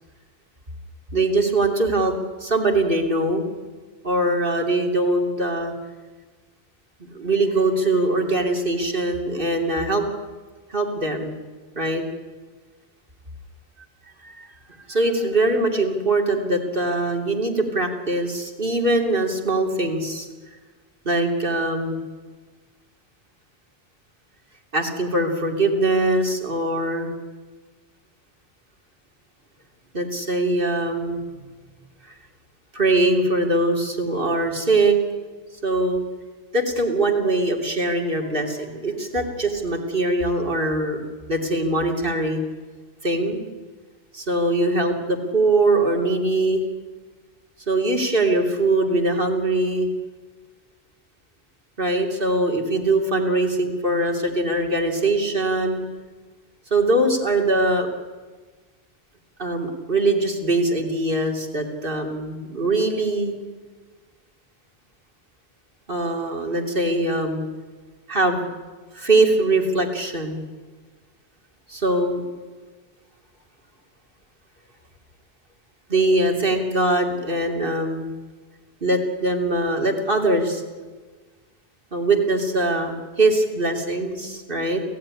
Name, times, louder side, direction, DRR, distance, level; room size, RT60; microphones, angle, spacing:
voice 1, 1.1-2.1 2.4-3.4 4.0-5.7 7.1-10.1 10.7-11.4 11.7-12.0 14.2-14.5 14.9-20.3 21.0-22.0 24.7-27.1 29.9-31.2 32.7-35.0 35.6-36.0 36.5-41.0 41.3-42.4 43.0-43.4 44.1-46.6 47.7-49.9 51.8-55.8 56.7-57.9 59.4-63.3 65.9-67.4 68.1-68.4 68.9-70.4 71.7-72.2 75.9-78.1 78.8-80.6 81.9-84.8, right 2 dB, 55° right, 3 dB, 3.2 m, -22 dB
28.5 x 16.0 x 10.0 m, 1.4 s
omnidirectional pair, 1.1 m